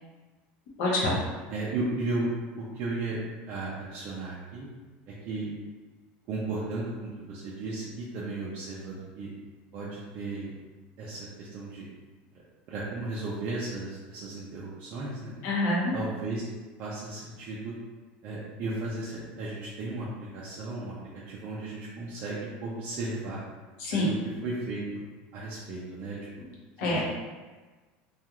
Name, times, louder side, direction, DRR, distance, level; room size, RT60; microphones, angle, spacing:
voice 1, 0.8-1.2 15.4-15.9 23.8-24.1 26.8-27.0, left 2 dB, 50° left, -4 dB, 0.7 m, -26 dB
voice 2, 1.5-2.3 2.6-3.2 3.5-4.7 5.1-5.5 6.3-9.3 9.7-10.5 11.0-11.8 12.7-15.4 15.9-16.5 16.8-17.7 18.2-20.9 21.3-23.4 23.9-24.1 24.4-24.8 25.3-26.2 26.8-27.0, right 2 dB, 35° right, -7 dB, 0.4 m, -35 dB
2.3 x 2.3 x 2.8 m, 1.3 s
cardioid pair, 180°, 5 cm